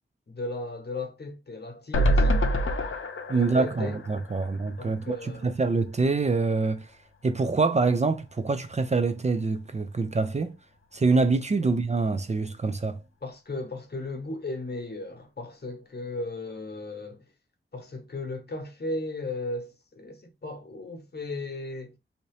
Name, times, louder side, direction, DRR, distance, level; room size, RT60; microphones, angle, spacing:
voice 1, 0.3-2.4 3.3-4.0 4.8-5.5 11.6-11.7 13.2-17.2 17.7-22.0, left 2 dB, 50° left, 0.9 m, -36 dB
sound 1, 1.9-5.2 5.5-5.6 5.9-6.0, equal, 75° left, 0.6 m, -26 dB
voice 2, 3.3-6.9 7.2-10.5 10.9-13.0, right 3 dB, 35° right, 0.4 m, -25 dB
2.8 x 2.7 x 3.1 m
wide cardioid pair, 85°, 21 cm